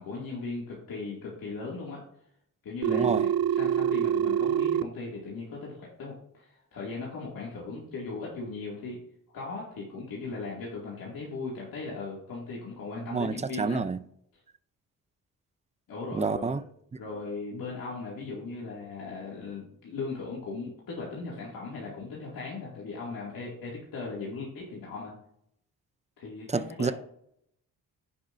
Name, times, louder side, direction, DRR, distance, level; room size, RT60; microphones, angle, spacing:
voice 1, 0.0-2.0 2.6-9.0 9.3-13.9 15.9-16.6 17.0-25.1 26.2-26.9, left 3 dB, 75° left, 2.3 m, -38 dB
Telephone, 2.8-4.8, right 9 dB, 80° right, 0.6 m, -25 dB
voice 2, 2.9-3.2 13.1-14.0 16.1-16.6 26.5-26.9, right 4 dB, 20° right, 0.5 m, -28 dB
15.5 x 5.3 x 2.6 m
cardioid pair, 85°, 35 cm